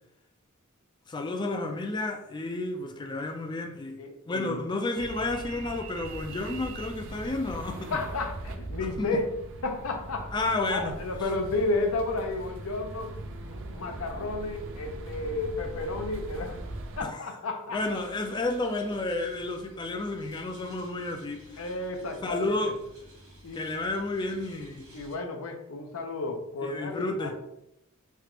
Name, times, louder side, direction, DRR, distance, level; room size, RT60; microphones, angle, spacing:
voice 1, 1.1-4.0 4.3-7.9 8.8-9.2 10.3-11.0 17.0-17.2 17.7-21.7 22.2-22.7 23.5-24.9 26.6-27.3, left 2 dB, 20° left, 0.4 m, -31 dB
voice 2, 4.0-4.6 7.9-9.3 9.6-13.1 13.4-16.6 17.0-17.8 21.6-22.6 23.4-23.9 24.9-27.3, left 2 dB, 80° left, 0.6 m, -32 dB
sound 1, 5.0-17.0, right 2 dB, 60° right, 0.4 m, -40 dB
sound 2, 17.7-25.2, equal, 80° right, 1.2 m, -52 dB
3.3 x 2.4 x 2.9 m
head